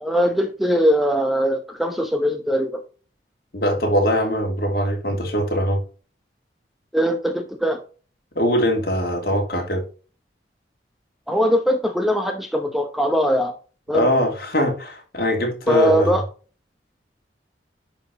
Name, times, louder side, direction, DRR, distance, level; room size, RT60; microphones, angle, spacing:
voice 1, 0.0-2.8 6.9-7.8 11.3-13.5 13.9-14.1 15.7-16.2, equal, ahead, 0.8 m, -21 dB
voice 2, 3.5-5.8 8.3-9.8 13.9-16.2, equal, 55° left, 2.7 m, -22 dB
10.5 x 5.2 x 2.9 m
head